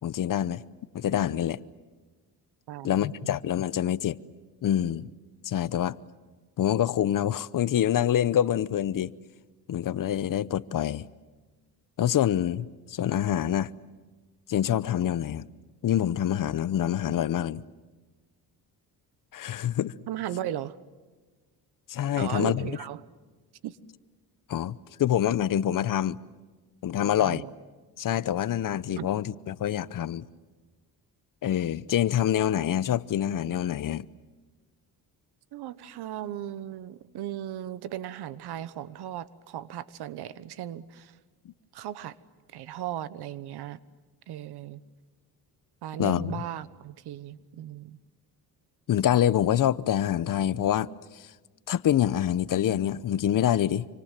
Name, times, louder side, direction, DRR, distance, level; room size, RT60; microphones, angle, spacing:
voice 1, 0.0-0.6 0.9-1.6 2.8-4.2 4.6-5.1 5.4-6.0 6.6-9.1 9.7-11.0 12.0-13.7 14.5-15.5 15.8-17.6 19.3-19.9 21.9-22.7 24.5-26.2 26.8-27.4 28.0-30.3 31.4-34.1 46.0-46.4 48.9-50.9 51.1-51.2 51.7-53.9, left 11 dB, 55° left, 0.8 m, -26 dB
voice 2, 2.7-3.1 20.1-20.7 22.2-23.0 23.6-23.8 27.2-27.5 29.0-29.1 35.5-41.1 41.7-42.1 42.5-43.8 44.3-44.8 45.8-48.0, right 11 dB, 85° right, 1.2 m, -36 dB
27.0 x 25.5 x 7.5 m
cardioid pair, 105°, 38 cm